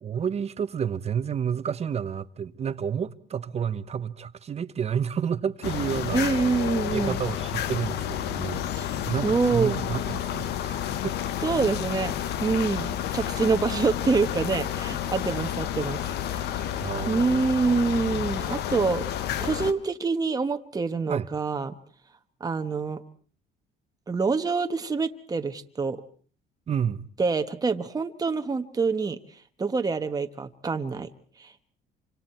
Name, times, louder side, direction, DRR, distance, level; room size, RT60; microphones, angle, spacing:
voice 1, 0.0-6.5 6.9-8.7 9.0-11.2 11.4-11.6 16.8-17.5 21.1-21.3 26.7-27.0, right 7 dB, 40° right, 1.1 m, -30 dB
sound 1, 5.6-19.7, left 10 dB, 75° left, 1.2 m, -30 dB
voice 2, 6.1-7.2 8.8-8.9 9.2-9.9 11.4-12.1 12.4-16.6 17.0-19.1 19.4-21.7 22.4-23.0 24.1-26.0 27.2-29.2 29.6-31.1 31.4-31.5, right 4 dB, 20° right, 1.3 m, -26 dB
27.0 x 26.0 x 4.5 m
cardioid pair, 110°, 17 cm